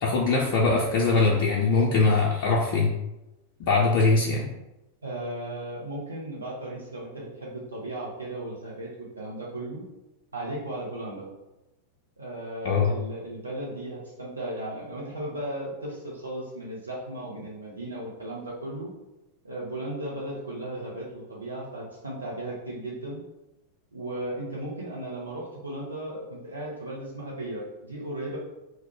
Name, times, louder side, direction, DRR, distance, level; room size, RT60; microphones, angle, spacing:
voice 1, 0.0-2.9 3.7-4.4 12.6-12.9, left 3 dB, 50° left, -3 dB, 0.4 m, -22 dB
voice 2, 5.0-9.8 10.3-11.3 12.2-18.9 19.4-23.2 23.9-28.4, right 1 dB, 80° right, -4 dB, 0.6 m, -36 dB
2.3 x 2.1 x 3.5 m, 0.97 s
figure-of-eight pair, 90°, 0 cm